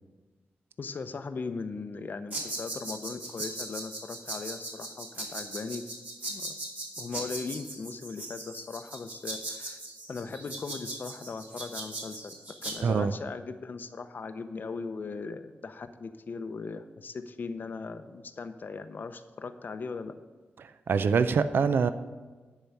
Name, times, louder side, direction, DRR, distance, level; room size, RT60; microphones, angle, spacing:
voice 1, 0.8-5.9 6.3-6.5 7.0-9.8 10.1-20.1, left 4 dB, 55° left, 10 dB, 0.6 m, -38 dB
sound 1, 2.3-12.7, right 2 dB, 45° right, 2.5 m, -38 dB
voice 2, 12.8-13.1 20.9-21.9, right 5 dB, 65° right, 12 dB, 0.4 m, -24 dB
10.5 x 4.6 x 6.7 m, 1.3 s
wide cardioid pair, 100°, 4 cm